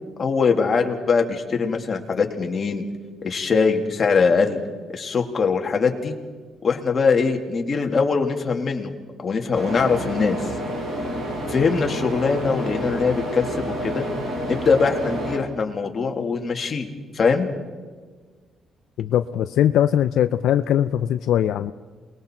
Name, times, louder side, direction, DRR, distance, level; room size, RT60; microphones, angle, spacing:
voice 1, 0.2-2.8 3.2-4.6 4.9-6.2 6.6-8.9 9.2-10.5 11.5-14.1 14.5-16.9 17.1-17.5, left 5 dB, 40° left, 3 dB, 2.5 m, -22 dB
sound 1, 9.5-15.4, equal, 60° right, 7.6 m, -29 dB
voice 2, 19.0-21.7, left 10 dB, 80° left, 10 dB, 0.5 m, -20 dB
28.0 x 21.0 x 4.5 m, 1.5 s
cardioid pair, 90°, 0 cm